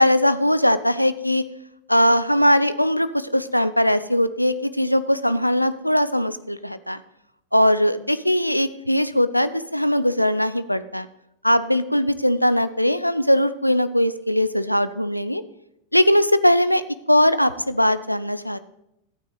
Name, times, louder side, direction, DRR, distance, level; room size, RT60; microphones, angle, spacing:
voice 1, 0.0-1.4 1.9-7.0 7.5-11.1 11.4-15.4 15.9-16.8 17.1-18.6, left 1 dB, 90° left, 13 dB, 0.5 m, -20 dB
14.0 x 9.2 x 3.9 m, 0.83 s
figure-of-eight pair, 90°, 0 cm